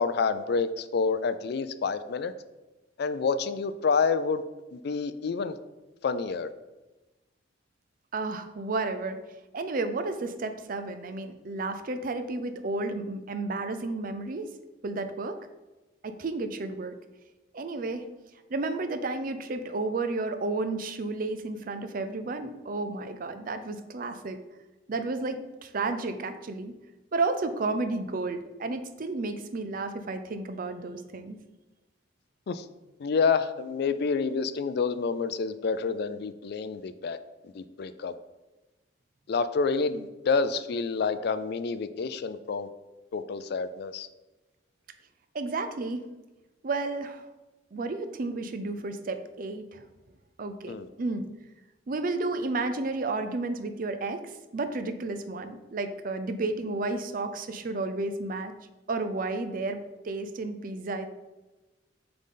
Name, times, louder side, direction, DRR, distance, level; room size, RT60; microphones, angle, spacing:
voice 1, 0.0-2.3 3.0-4.4 4.7-5.5 6.0-6.5 32.5-32.6 33.0-37.2 37.5-38.1 39.3-42.7 43.1-44.1 50.7-50.9, left 5 dB, 60° left, 12 dB, 0.4 m, -28 dB
voice 2, 8.1-9.2 9.5-14.5 14.8-15.4 16.0-16.9 17.5-18.0 18.5-24.4 24.9-26.7 27.1-31.4 45.3-46.0 46.6-47.3 47.7-49.8 50.4-51.3 51.9-58.5 58.9-61.1, right 3 dB, 45° right, 9 dB, 0.5 m, -32 dB
7.2 x 3.9 x 3.8 m, 1.1 s
head